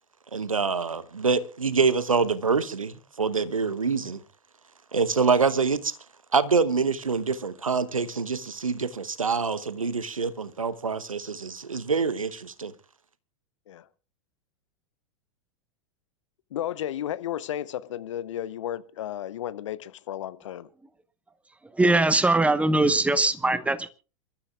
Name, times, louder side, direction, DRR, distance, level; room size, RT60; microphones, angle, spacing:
voice 1, 0.3-4.2 4.9-6.0 6.3-12.7, right 5 dB, 85° right, 1.0 m, -25 dB
voice 2, 16.5-20.7, left 11 dB, 65° left, 0.9 m, -33 dB
voice 3, 21.8-23.9, right 2 dB, 10° right, 1.1 m, -21 dB
27.5 x 13.0 x 2.4 m
figure-of-eight pair, 95°, 17 cm